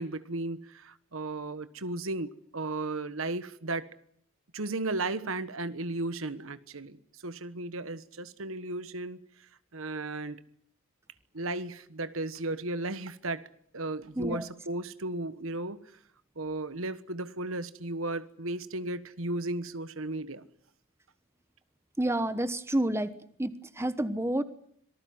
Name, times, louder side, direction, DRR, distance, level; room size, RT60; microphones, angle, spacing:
voice 1, 0.0-3.9 4.5-10.4 11.3-13.5 13.7-15.8 16.4-20.5, right 2 dB, 75° right, 13 dB, 1.3 m, -35 dB
voice 2, 22.0-23.1 23.4-24.4, right 1 dB, 10° right, 12 dB, 1.1 m, -29 dB
26.0 x 19.0 x 9.6 m, 0.67 s
head